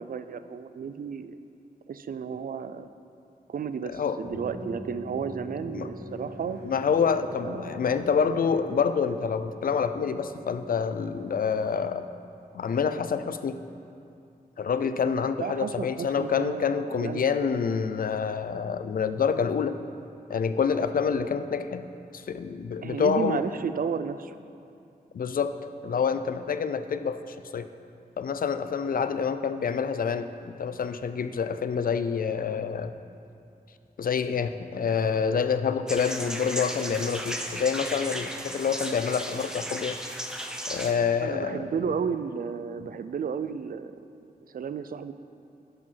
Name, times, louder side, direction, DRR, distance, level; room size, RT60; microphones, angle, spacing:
voice 1, 0.0-1.4 1.9-2.9 3.5-6.6 7.5-8.0 15.4-17.3 22.8-24.3 29.0-29.1 41.2-43.9 44.5-45.1, right 6 dB, 60° right, 12 dB, 0.4 m, -33 dB
sound 1, 4.2-11.7, equal, 80° left, 2.4 m, -42 dB
voice 2, 6.6-12.1 12.5-13.6 14.6-19.8 20.3-21.8 22.1-23.5 25.1-25.5 25.8-27.7 28.2-32.9 34.0-40.0 40.7-41.7, left 6 dB, 60° left, 11 dB, 0.4 m, -27 dB
sound 2, 35.9-40.9, equal, 5° right, 0.7 m, -35 dB
11.5 x 4.9 x 5.6 m, 2.6 s
wide cardioid pair, 105°, 16 cm